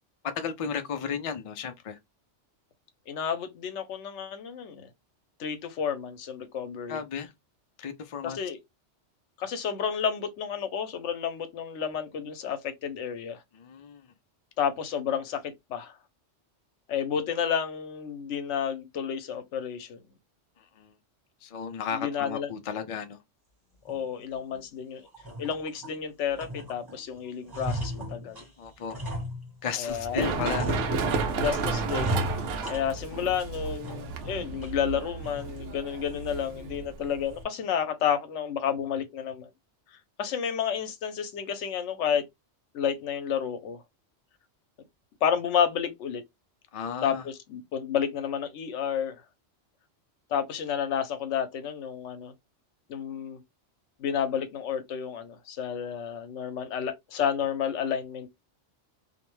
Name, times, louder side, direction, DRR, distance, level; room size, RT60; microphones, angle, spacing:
voice 1, 0.3-2.0 6.9-7.3 7.8-8.4 13.5-14.1 20.6-20.9 21.4-23.2 28.6-29.0 29.6-30.9 46.7-47.2, left 7 dB, 60° left, 0.3 m, -34 dB
voice 2, 3.1-4.9 5.4-7.0 8.2-8.6 9.4-13.4 14.6-15.9 16.9-20.0 21.9-22.5 23.8-25.0 25.4-28.5 29.8-30.3 31.1-32.2 32.7-39.5 40.2-42.2 42.7-43.8 45.2-46.2 47.0-49.2 50.3-52.3 52.9-53.4 54.0-58.3, left 8 dB, 80° left, 0.9 m, -31 dB
sound 1, 23.9-24.0 24.5-24.6 25.1-26.0 26.4-27.0 27.3-29.9 30.4-31.4 31.8-33.3 33.6-34.3 34.6-34.7 35.2-35.6, equal, 20° right, 0.8 m, -35 dB
Run, 29.9-37.4, right 4 dB, 85° right, 0.9 m, -32 dB
2.5 x 2.1 x 3.0 m
omnidirectional pair, 1.2 m